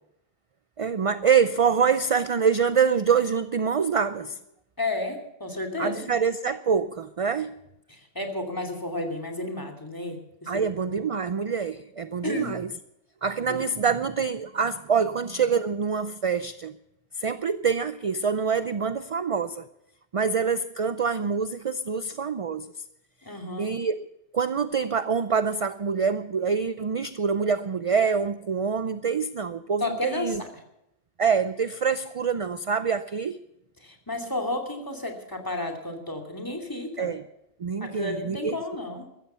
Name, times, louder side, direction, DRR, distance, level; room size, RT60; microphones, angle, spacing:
voice 1, 0.8-4.4 5.8-7.6 10.5-12.7 13.2-16.8 17.1-19.7 20.1-22.8 23.6-24.1 24.3-30.4 31.2-33.4 37.0-37.2 37.6-38.6, right 6 dB, 40° right, 13 dB, 0.5 m, -25 dB
voice 2, 4.8-6.1 7.9-10.6 12.2-12.6 13.5-13.6 23.2-23.7 29.8-30.5 33.8-37.1 37.8-39.1, left 2 dB, 20° left, 6 dB, 2.7 m, -32 dB
15.0 x 14.0 x 5.6 m, 0.84 s
omnidirectional pair, 1.1 m